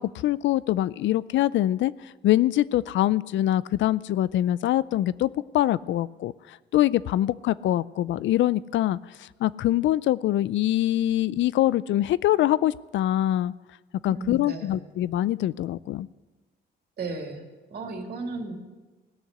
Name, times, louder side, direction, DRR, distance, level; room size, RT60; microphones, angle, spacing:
voice 1, 0.0-1.9 2.2-13.5 14.0-16.1, left 13 dB, 70° left, 19 dB, 0.4 m, -24 dB
voice 2, 14.1-14.8 17.0-17.4 17.7-18.6, right 3 dB, 55° right, 2 dB, 2.7 m, -34 dB
17.5 x 6.4 x 8.2 m, 1.2 s
cardioid pair, 90°, 20 cm